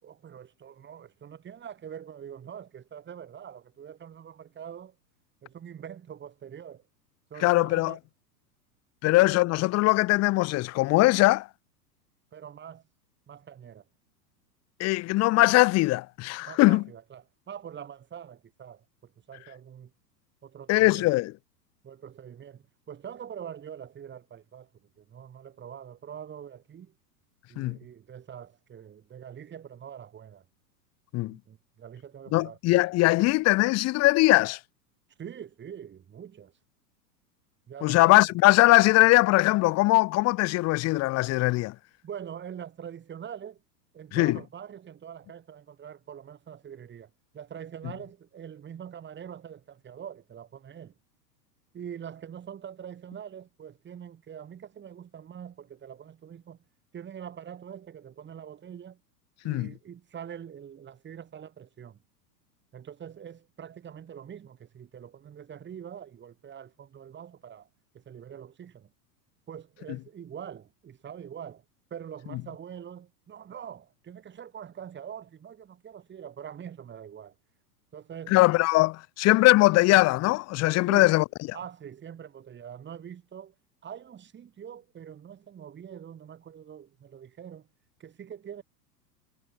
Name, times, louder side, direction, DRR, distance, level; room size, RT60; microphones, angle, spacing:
voice 1, 0.0-5.0 5.4-6.8 7.3-8.0 9.0-9.4 12.3-12.8 13.3-13.8 16.4-19.9 20.4-21.1 21.8-24.7 25.0-26.9 27.5-30.4 31.2-32.6 35.2-36.5 37.7-38.3 42.0-43.6 43.9-50.9 51.7-56.6 56.9-59.0 59.4-62.0 62.7-67.7 67.9-68.9 69.5-71.6 71.9-77.3 77.9-78.4 80.9-81.1 81.5-83.5 83.8-87.7 88.0-88.6, right 8 dB, 20° right, 4.7 m, -44 dB
voice 2, 7.4-7.9 9.0-11.5 14.8-16.8 20.7-21.3 27.6-27.8 31.1-31.4 32.3-34.6 37.8-41.7 44.1-44.4 59.4-59.7 78.3-81.2, left 20 dB, 30° left, 1.3 m, -21 dB
figure-of-eight pair, 95°, 49 cm